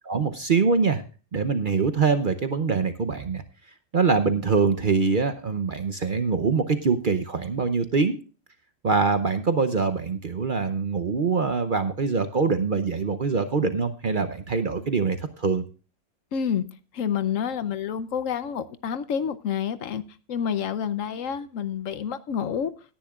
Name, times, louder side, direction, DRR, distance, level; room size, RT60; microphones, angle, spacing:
voice 1, 0.0-1.0 1.3-3.4 3.9-8.2 8.8-15.6, right 5 dB, 45° right, 9 dB, 0.8 m, -24 dB
voice 2, 16.3-16.6 16.9-20.0 20.3-22.7, left 8 dB, 80° left, 13 dB, 1.1 m, -28 dB
17.5 x 10.0 x 2.4 m, 0.35 s
omnidirectional pair, 1.3 m